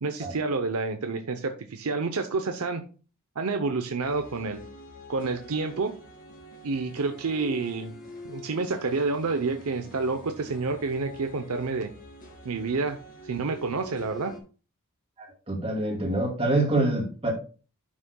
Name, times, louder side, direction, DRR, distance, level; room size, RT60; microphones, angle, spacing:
voice 1, 0.0-2.8 3.4-4.6 5.1-5.9 6.6-7.9 8.2-11.9 12.4-13.0 13.2-14.3, right 4 dB, 85° right, 6 dB, 0.7 m, -29 dB
sound 1, 4.0-14.4, left 1 dB, 40° left, 2.2 m, -46 dB
voice 2, 15.2-17.3, right 2 dB, 25° right, 0 dB, 2.3 m, -26 dB
11.0 x 6.3 x 2.3 m, 0.36 s
head